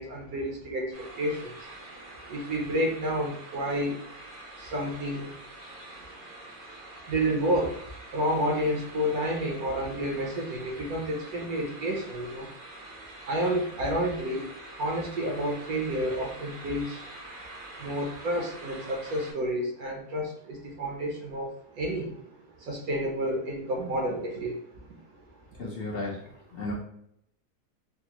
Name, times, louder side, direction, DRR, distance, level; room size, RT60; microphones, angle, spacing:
voice 1, 0.0-1.7 2.3-4.0 4.6-5.3 7.1-7.8 8.1-12.5 13.2-14.5 14.8-17.0 17.8-24.6 25.2-25.3 25.5-25.6, equal, 70° right, 0 dB, 1.1 m, -30 dB
sound 1, 0.9-19.3, right 2 dB, 45° right, 0.7 m, -46 dB
voice 2, 25.6-26.2 26.5-26.7, left 2 dB, 55° left, -3 dB, 0.7 m, -33 dB
3.4 x 2.1 x 2.8 m, 0.71 s
omnidirectional pair, 1.7 m